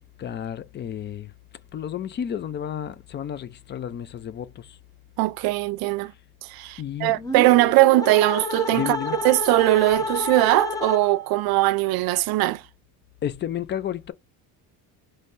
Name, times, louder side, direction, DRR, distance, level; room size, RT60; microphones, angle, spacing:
voice 1, 0.2-1.3 1.7-4.8 6.8-7.2 8.7-9.2 13.2-14.1, left 9 dB, 30° left, 0.4 m, -31 dB
voice 2, 5.2-6.1 6.5-9.0 9.2-12.6, right 18 dB, 65° right, 0.5 m, -20 dB
sound 1, 7.2-11.4, left 3 dB, 10° left, 0.9 m, -30 dB
5.3 x 3.2 x 2.5 m
cardioid pair, 140°, 39 cm